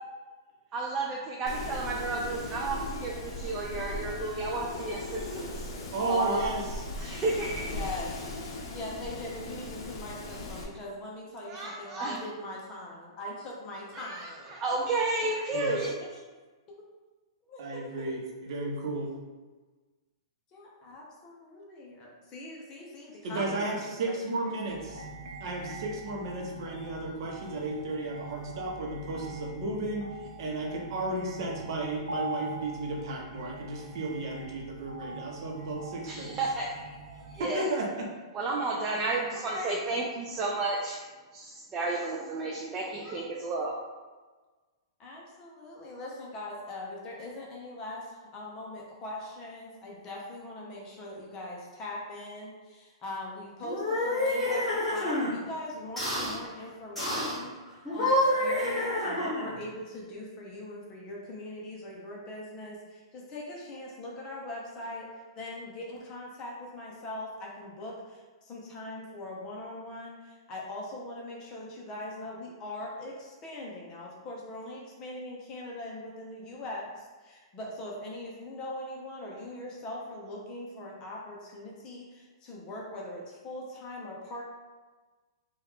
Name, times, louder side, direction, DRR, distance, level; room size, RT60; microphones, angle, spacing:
voice 1, 0.7-5.7 6.1-6.4 7.0-7.7 11.5-12.2 13.9-15.9 36.1-36.7 37.4-37.7 38.3-41.0 41.3-43.8, right 3 dB, 20° right, -2 dB, 0.3 m, -32 dB
Wind, 1.5-10.6, left 2 dB, 55° left, 0.7 m, -38 dB
voice 2, 5.9-6.9 15.5-15.8 17.6-19.1 23.2-25.0 25.4-30.1 30.4-36.3 37.4-38.1, right 2 dB, 55° right, -1 dB, 0.8 m, -33 dB
voice 3, 7.6-8.2 8.7-14.5 16.1-16.2 16.7-16.8 17.5-18.2 20.5-23.8 39.3-39.7 45.0-65.1 65.4-84.4, left 1 dB, 25° left, -3 dB, 0.7 m, -41 dB
sound 1, 24.7-37.4, right 2 dB, 90° right, 0.6 m, -43 dB
sound 2, 53.6-55.3 56.0-56.4 57.0-57.4 57.8-59.6, left 1 dB, 5° left, 1.3 m, -28 dB
3.0 x 2.3 x 3.5 m, 1.3 s
hypercardioid pair, 155°, 3 cm